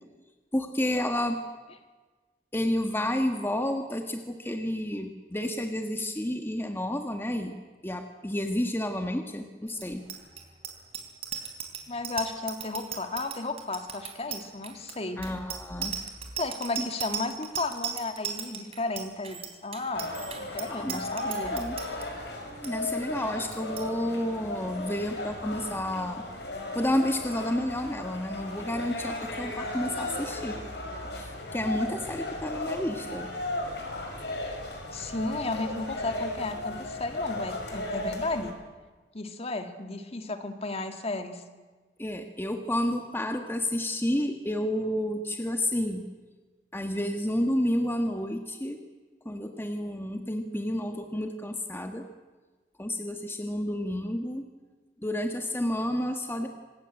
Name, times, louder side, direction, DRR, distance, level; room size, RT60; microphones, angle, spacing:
voice 1, 0.5-1.4 2.5-7.5 7.8-10.0 15.2-16.0 16.8-16.9 20.8-21.0 21.5-21.8 22.6-26.2 26.7-30.6 31.1-33.3 42.0-46.0 46.7-48.8 49.2-52.1 52.8-54.4 55.0-56.5, left 1 dB, 15° left, 5 dB, 1.5 m, -30 dB
Bicycle bell, 9.7-22.0 22.4-22.7 23.0-23.3 23.5-23.9, right 8 dB, 35° right, 3.6 m, -37 dB
voice 2, 11.9-15.2 16.4-20.1 20.4-21.6 34.9-38.5 39.1-41.4, left 2 dB, 35° left, 7 dB, 2.0 m, -33 dB
sound 1, 19.9-38.5, left 2 dB, 75° left, 5.6 m, -36 dB
26.0 x 19.5 x 9.0 m, 1.3 s
head